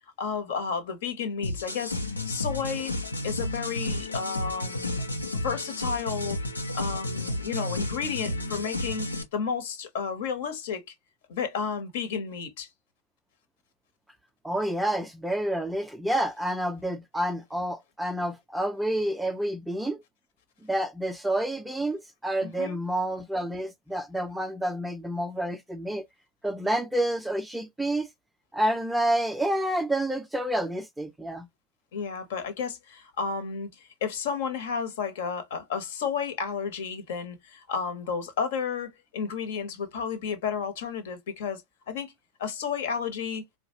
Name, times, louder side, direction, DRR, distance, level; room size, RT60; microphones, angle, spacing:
voice 1, 0.2-2.0 2.3-2.9 3.2-5.0 5.4-6.4 6.7-9.1 9.3-10.9 11.3-12.7 22.4-22.8 31.9-42.1 42.4-43.4, left 6 dB, 55° left, 1.2 m, -32 dB
sound 1, 1.4-9.2, left 1 dB, 80° left, 0.9 m, -32 dB
voice 2, 14.4-20.0 20.6-26.1 26.4-28.1 28.5-31.5, right 1 dB, 5° right, 0.4 m, -29 dB
4.6 x 2.3 x 2.9 m
figure-of-eight pair, 90°, 0 cm